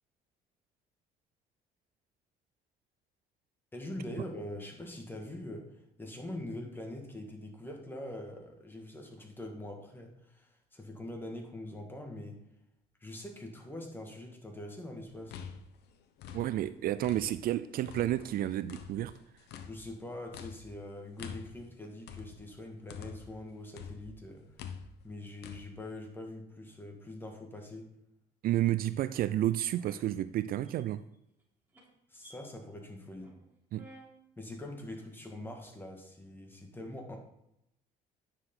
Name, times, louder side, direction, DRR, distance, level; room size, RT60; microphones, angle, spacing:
voice 1, 3.7-12.5 13.0-15.4 19.7-24.5 25.0-27.9 32.1-33.3 34.4-37.2, left 1 dB, 10° left, 1.9 m, -43 dB
sound 1, 15.1-17.5 17.9-23.4 23.8-25.6, left 7 dB, 80° left, 0.9 m, -47 dB
voice 2, 16.3-19.1 28.4-31.0 33.7-33.9, right 13 dB, 60° right, 0.4 m, -31 dB
sound 2, 28.8-29.2 29.8-29.9 30.4-30.7 31.1-31.4 31.7-31.8 32.2-32.4 32.7-32.8 33.1-33.5 33.7-34.1 34.7-34.8 35.2-35.6, right 1 dB, 10° right, 3.4 m, -55 dB
9.8 x 6.5 x 3.8 m
cardioid pair, 110°, 17 cm